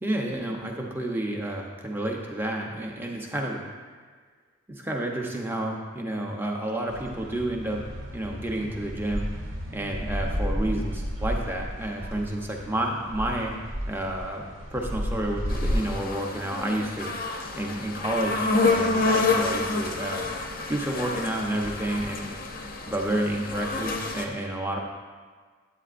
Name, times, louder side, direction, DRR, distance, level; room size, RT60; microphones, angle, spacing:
voice 1, 0.0-3.6 4.7-7.8 8.1-9.3 9.7-13.5 13.9-17.1 17.6-20.3 20.7-22.3 22.9-24.8, right 1 dB, 10° right, 0 dB, 0.7 m, -30 dB
sound 1, 6.9-15.7, equal, 60° right, 0.9 m, -33 dB
sound 2, 15.5-24.2, left 3 dB, 40° left, 0.6 m, -28 dB
9.0 x 8.8 x 2.5 m, 1.5 s
head